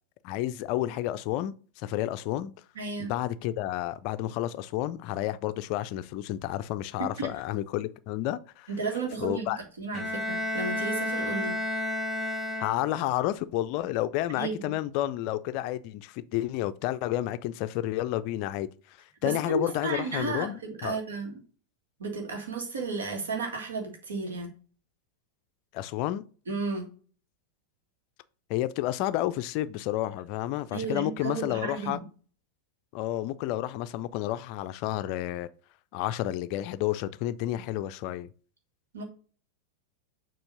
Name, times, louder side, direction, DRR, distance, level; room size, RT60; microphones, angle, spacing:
voice 1, 0.2-2.5 3.0-8.7 9.2-9.6 12.6-18.7 19.2-21.0 25.7-26.2 28.5-32.0 32.9-35.5 35.9-38.3, left 14 dB, 45° left, 0.4 m, -30 dB
voice 2, 2.8-3.1 7.0-7.3 8.7-11.5 14.3-14.7 19.2-21.3 22.0-24.5 26.5-26.9 30.7-32.0 38.9-39.0, right 3 dB, 65° right, 2.0 m, -33 dB
Bowed string instrument, 9.9-13.2, left 1 dB, ahead, 1.6 m, -31 dB
7.0 x 3.0 x 5.4 m
figure-of-eight pair, 90°, 0 cm